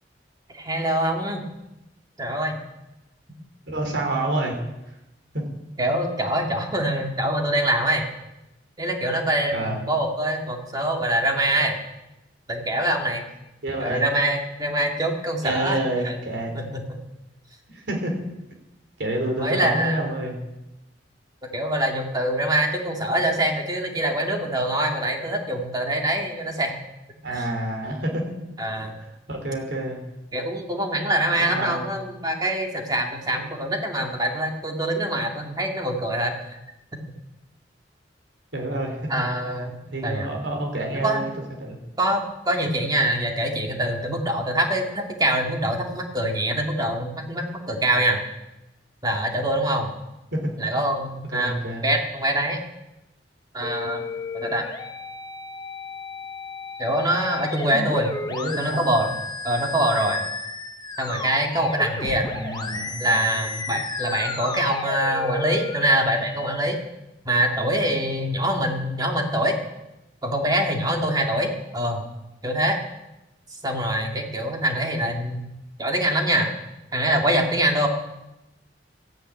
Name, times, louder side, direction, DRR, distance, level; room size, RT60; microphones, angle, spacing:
voice 1, 0.5-1.4 2.2-2.6 5.8-8.0 8.8-11.7 12.5-13.2 13.8-15.8 16.0-16.2 16.5-16.8 19.4-20.0 21.5-26.7 27.3-27.5 28.6-29.0 30.3-36.6 39.1-39.8 40.0-40.3 41.0-41.3 42.0-48.2 49.0-49.9 50.6-52.6 53.5-54.0 54.3-54.7 56.8-58.2 58.6-59.2 59.4-60.2 61.0-62.3 63.0-66.8 67.3-69.5 70.2-72.0 72.4-72.8 73.6-75.5 75.8-76.5 76.9-77.9, right 1 dB, 20° right, 2 dB, 2.2 m, -24 dB
voice 2, 3.7-4.5 5.3-5.4 9.5-9.8 13.6-14.0 15.4-16.5 17.7-18.1 19.0-20.4 27.2-28.3 28.8-28.9 29.3-30.0 31.4-31.8 38.5-39.2 39.9-41.3 41.6-41.8 50.3-50.5 51.3-51.8 58.3-58.9 62.3-63.3 74.9-75.0, right 1 dB, 70° right, 1 dB, 4.0 m, -28 dB
sound 1, 53.6-66.6, left 3 dB, 25° left, 1.1 m, -33 dB
14.0 x 10.0 x 9.0 m, 0.96 s
head